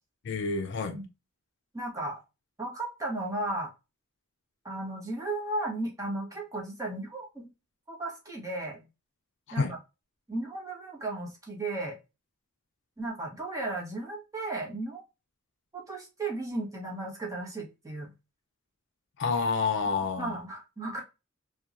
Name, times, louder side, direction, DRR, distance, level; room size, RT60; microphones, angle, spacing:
voice 1, 0.2-1.0 9.6-9.7 19.2-20.4, left 4 dB, 60° left, 0.4 m, -28 dB
voice 2, 1.7-2.2 2.6-3.7 4.6-7.5 7.9-8.8 9.5-9.6 10.3-12.0 13.0-15.0 15.7-18.1 20.2-21.0, right 2 dB, 15° right, 0.9 m, -35 dB
2.9 x 2.3 x 2.4 m
head